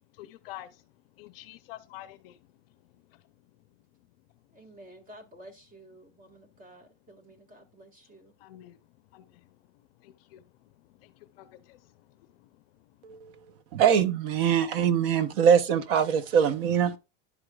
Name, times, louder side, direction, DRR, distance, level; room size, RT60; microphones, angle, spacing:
voice 1, 0.2-0.8 1.2-2.4 8.4-8.8 9.1-9.4 10.0-10.4 11.0-11.8 12.4-12.5, left 14 dB, 50° left, 0.6 m, -47 dB
voice 2, 4.5-8.3, right 1 dB, 20° right, 1.4 m, -51 dB
voice 3, 13.7-17.0, right 8 dB, 50° right, 0.8 m, -23 dB
11.5 x 4.8 x 2.3 m
supercardioid pair, 155°, 37 cm